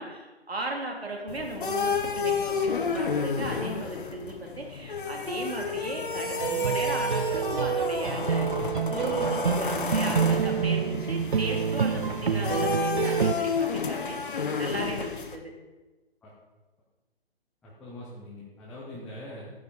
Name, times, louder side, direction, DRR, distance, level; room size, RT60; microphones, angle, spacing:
voice 1, 0.0-15.5 18.9-19.0, right 2 dB, 70° right, 1 dB, 3.3 m, -36 dB
sound 1, 1.3-15.4, left 5 dB, 55° left, 1.4 m, -31 dB
sound 2, 6.4-13.3, right 6 dB, 50° right, 0.7 m, -27 dB
voice 2, 17.6-19.5, left 1 dB, ahead, -8 dB, 0.6 m, -42 dB
13.5 x 10.0 x 5.3 m, 1.2 s
figure-of-eight pair, 140°, 31 cm